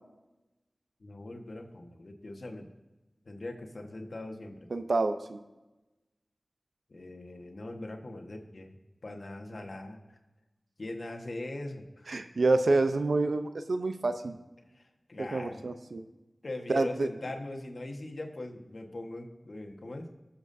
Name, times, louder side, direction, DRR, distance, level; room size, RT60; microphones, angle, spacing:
voice 1, 1.0-2.7 3.2-4.7 6.9-8.8 9.0-10.0 10.8-12.2 14.7-15.7 16.4-20.1, left 2 dB, 70° left, 3 dB, 1.4 m, -41 dB
voice 2, 4.7-5.4 12.1-14.4 15.2-16.1 16.7-17.1, right 2 dB, 85° right, 9 dB, 0.6 m, -28 dB
20.5 x 7.1 x 2.7 m, 1.1 s
cardioid pair, 40°, 0 cm